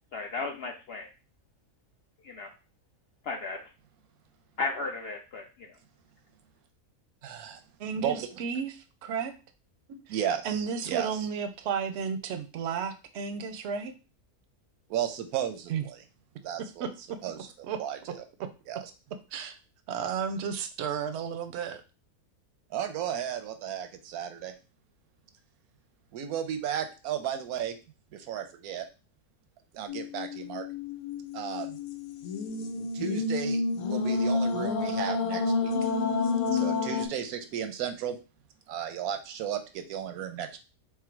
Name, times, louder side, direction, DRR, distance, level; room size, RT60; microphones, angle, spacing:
voice 1, 0.1-1.1 2.2-2.5 3.2-3.6 4.6-5.7, left 3 dB, 70° left, 3 dB, 0.6 m, -34 dB
voice 2, 7.2-7.6 8.0-8.4 10.1-11.3 14.9-16.0 16.4-16.9 17.2-18.2 18.7-18.9 22.7-24.5 26.1-27.7 28.1-28.9 29.7-30.6 31.3-31.8 32.8-33.6 33.9-35.7 36.5-38.2 38.7-40.6, right 9 dB, 90° right, 7 dB, 1.1 m, -34 dB
voice 3, 7.8-8.7 9.0-9.3 10.4-13.9 15.7-15.8 16.8-17.2 17.7-17.8 18.4-18.5 19.3-19.5 19.9-21.8, right 6 dB, 65° right, 8 dB, 0.7 m, -33 dB
sound 1, 29.9-37.1, left 4 dB, 85° left, 1.1 m, -29 dB
4.6 x 2.0 x 4.4 m, 0.32 s
omnidirectional pair, 1.5 m